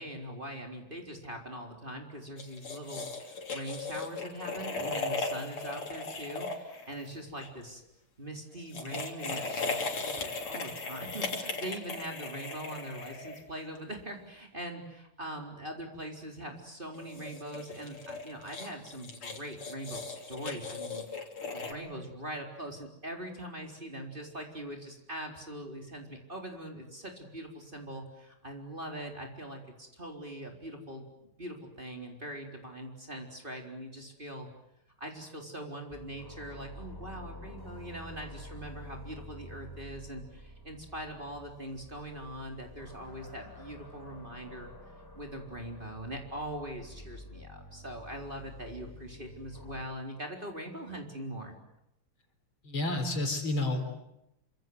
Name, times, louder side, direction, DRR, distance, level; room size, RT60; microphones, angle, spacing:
voice 1, 0.0-7.8 8.2-21.0 21.5-34.5 35.0-44.7 45.1-51.6, right 1 dB, 20° right, 2 dB, 4.3 m, -42 dB
sound 1, 2.4-7.5 8.6-13.8 16.9-21.7, left 3 dB, 80° left, 4.2 m, -37 dB
sound 2, 35.9-49.8, left 1 dB, 10° left, 3.3 m, -49 dB
voice 2, 52.6-54.0, left 2 dB, 65° left, 6 dB, 4.9 m, -30 dB
28.0 x 25.5 x 8.0 m, 0.82 s
omnidirectional pair, 2.4 m